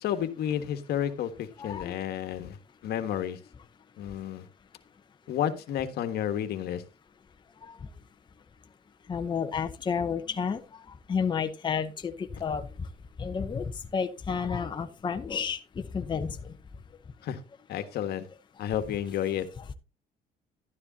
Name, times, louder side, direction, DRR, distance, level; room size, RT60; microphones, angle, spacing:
voice 1, 0.0-2.6 2.8-3.4 4.0-4.5 5.3-6.8 17.2-17.4 17.7-18.2 18.6-19.5, left 10 dB, 70° left, 1.4 m, -31 dB
voice 2, 1.6-1.9 7.7-7.8 9.1-10.6 11.1-12.6 13.2-13.6 13.9-15.6 15.9-16.4, left 6 dB, 25° left, 0.8 m, -30 dB
12.0 x 9.9 x 2.8 m
cardioid pair, 110°, 17 cm